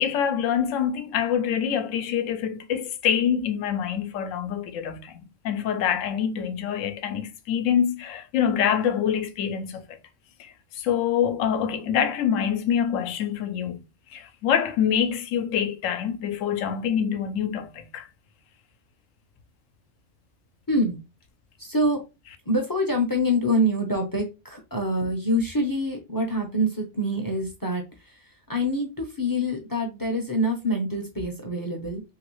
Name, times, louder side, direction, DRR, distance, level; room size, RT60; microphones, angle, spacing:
voice 1, 0.0-5.2 5.4-9.8 10.4-13.8 14.1-18.1, left 8 dB, 80° left, 0.9 m, -25 dB
voice 2, 20.7-21.0 21.6-22.0 22.5-32.0, equal, 25° left, 0.5 m, -26 dB
3.0 x 2.8 x 3.0 m
omnidirectional pair, 1.3 m